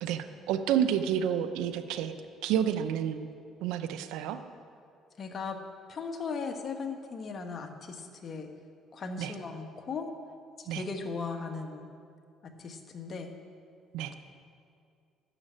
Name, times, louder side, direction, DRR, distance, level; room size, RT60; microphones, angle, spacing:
voice 1, 0.0-2.1 2.4-3.3 3.6-4.4 9.2-9.3 10.7-10.8 13.9-14.1, right 9 dB, 85° right, 10 dB, 0.7 m, -29 dB
voice 2, 5.2-5.6 5.9-8.5 8.9-10.1 10.6-11.9 12.4-13.3, left 4 dB, 45° left, 5 dB, 1.3 m, -37 dB
11.0 x 7.3 x 9.0 m, 2.3 s
cardioid pair, 95°, 0 cm